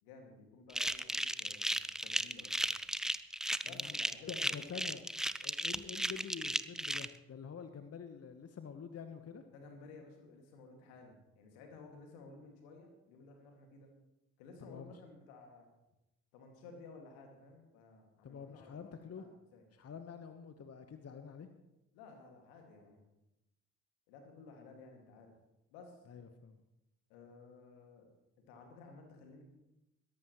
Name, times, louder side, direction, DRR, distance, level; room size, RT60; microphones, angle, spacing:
voice 1, 0.0-2.7 3.6-4.8 9.5-13.9 14.4-15.7 16.3-19.6 21.9-23.0 24.1-25.3 25.7-26.0 27.1-28.1 28.5-29.4, left 4 dB, 75° left, 3 dB, 2.3 m, -55 dB
sound 1, 0.7-7.1, right 1 dB, ahead, 0.4 m, -35 dB
voice 2, 3.7-4.0 4.3-5.0 5.4-9.4 14.6-14.9 18.2-19.3 19.7-21.5 26.1-26.6, left 6 dB, 35° left, 8 dB, 1.2 m, -47 dB
21.5 x 11.5 x 3.1 m, 0.92 s
figure-of-eight pair, 40°, 41 cm